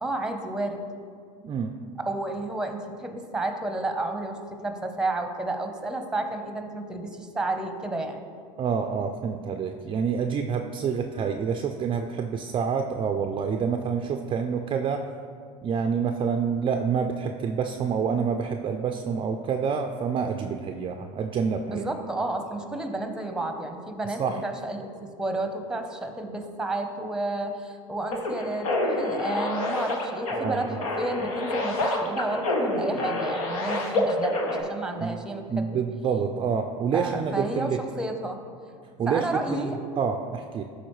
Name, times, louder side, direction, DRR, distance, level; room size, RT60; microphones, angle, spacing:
voice 1, 0.0-0.8 2.0-8.2 21.7-35.7 36.9-38.4 39.1-39.8, right 2 dB, 5° right, 5 dB, 0.8 m, -31 dB
voice 2, 8.6-15.1 15.6-21.9 24.2-24.4 30.3-30.8 35.0-35.2 35.5-37.8 39.0-39.7 40.0-40.6, right 6 dB, 30° right, 5 dB, 0.4 m, -27 dB
sound 1, 28.1-34.6, left 2 dB, 85° left, 1.0 m, -28 dB
12.0 x 4.2 x 3.1 m, 2.2 s
hypercardioid pair, 90°, 18 cm